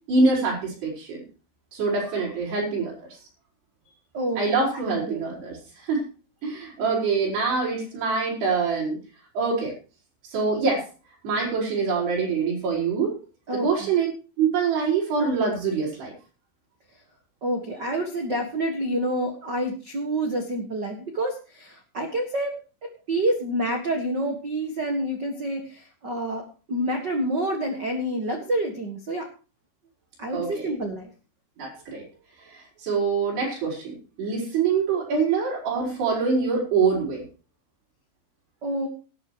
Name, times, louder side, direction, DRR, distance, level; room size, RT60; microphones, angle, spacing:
voice 1, 0.1-1.2 1.7-2.9 4.4-5.6 5.9-6.1 6.4-9.0 9.4-9.7 10.3-10.9 11.2-13.2 13.5-14.1 14.4-16.1 30.3-30.7 31.6-32.0 32.5-37.2, right 4 dB, 70° right, -4 dB, 7.1 m, -25 dB
voice 2, 13.5-13.9 17.4-22.6 22.8-29.3 30.2-31.1 38.6-38.9, right 1 dB, 90° right, 4 dB, 0.9 m, -28 dB
18.5 x 11.0 x 3.1 m, 0.35 s
omnidirectional pair, 4.9 m